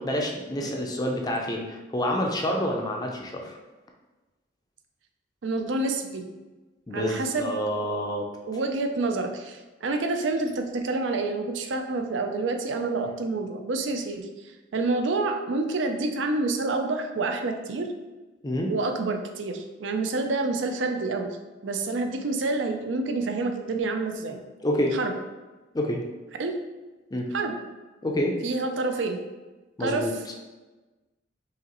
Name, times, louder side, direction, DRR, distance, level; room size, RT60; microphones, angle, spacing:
voice 1, 0.0-3.6 6.9-8.3 18.4-18.7 24.6-25.0 25.7-26.0 27.1-27.3 28.0-28.4 29.8-30.1, equal, 20° left, 1 dB, 0.4 m, -28 dB
voice 2, 5.4-6.3 6.9-7.5 8.5-14.3 14.7-17.9 18.7-21.4 21.6-24.4 24.9-25.1 26.4-26.6 27.3-27.6 28.4-29.2 29.8-30.1, right 3 dB, 70° right, 5 dB, 0.5 m, -28 dB
4.8 x 3.0 x 3.0 m, 1.2 s
head